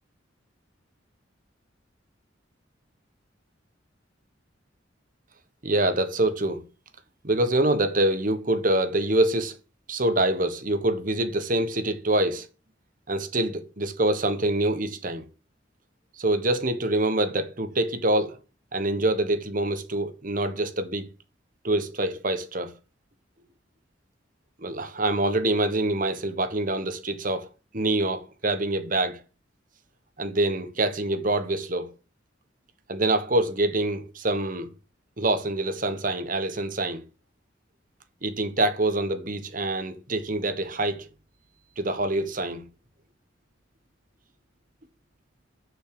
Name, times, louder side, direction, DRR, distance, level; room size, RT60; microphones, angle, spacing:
voice 1, 5.6-6.6 7.2-9.5 9.9-12.5 13.1-15.2 16.2-18.4 18.7-21.1 21.6-22.7 24.6-27.5 27.7-29.2 30.2-31.9 32.9-34.7 35.2-37.0 38.2-41.1 41.8-42.7, right 1 dB, 45° right, 1.3 m, -25 dB
7.0 x 6.4 x 6.8 m
head